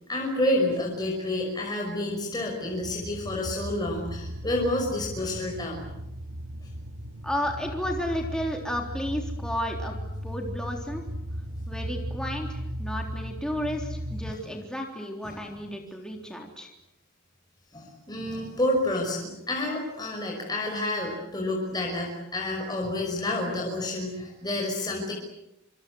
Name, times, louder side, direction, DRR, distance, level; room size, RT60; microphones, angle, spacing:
voice 1, 0.1-5.8 14.3-14.4 15.2-15.4 17.7-25.1, left 1 dB, 20° left, -1 dB, 5.7 m, -29 dB
sound 1, 2.7-14.3, equal, 75° right, 2.3 m, -36 dB
voice 2, 7.2-9.9 10.2-11.0 11.7-16.7, equal, 5° left, 1 dB, 3.6 m, -32 dB
27.5 x 26.0 x 8.0 m, 0.88 s
head